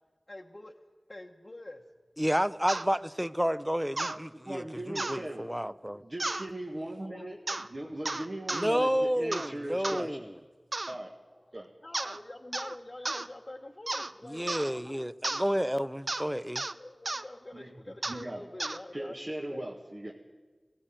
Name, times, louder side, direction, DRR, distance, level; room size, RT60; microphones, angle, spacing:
voice 1, 0.3-0.7 1.1-1.8 7.0-8.0 11.8-15.1 16.7-19.2 19.5-19.7, left 1 dB, 40° left, 1.1 m, -46 dB
voice 2, 2.2-6.0 8.5-10.3 14.2-16.6, equal, 5° right, 0.6 m, -30 dB
sound 1, 2.7-2.9 4.0-4.2 5.0-5.2 6.2-6.5 7.5-7.7 8.1-8.7 9.3-9.5 9.8-10.0 10.7-11.0 11.9-12.2 12.5-12.8 13.1-13.3 13.9-14.1 14.5-14.7 15.2-15.5 16.1-16.3 16.6-16.7 17.1-17.2 18.0-18.2 18.6-18.8, right 2 dB, 60° right, 0.7 m, -33 dB
voice 3, 4.0-5.5 6.0-7.4 7.7-10.3 10.9-11.1 11.5-11.7 17.5-17.7 18.1-18.4 18.9-20.1, right 1 dB, 45° right, 1.8 m, -39 dB
18.0 x 16.0 x 8.9 m
wide cardioid pair, 55°, 0 cm